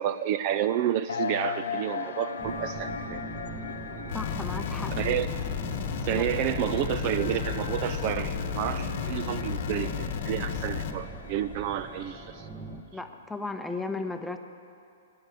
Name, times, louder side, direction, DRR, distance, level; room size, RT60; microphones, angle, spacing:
voice 1, 0.0-3.2 5.0-5.3 6.0-12.5, right 11 dB, 40° right, 12 dB, 0.4 m, -30 dB
sound 1, 1.1-12.5, left 5 dB, 85° left, 0.9 m, -39 dB
sound 2, 2.4-12.8, right 3 dB, 20° right, 1.0 m, -42 dB
sound 3, 4.1-10.9, left 7 dB, 55° left, 1.1 m, -33 dB
voice 2, 4.1-5.1 6.1-6.3 12.9-14.4, left 3 dB, 5° left, 6 dB, 0.8 m, -35 dB
11.5 x 9.7 x 9.2 m, 2.7 s
hypercardioid pair, 135°, 0 cm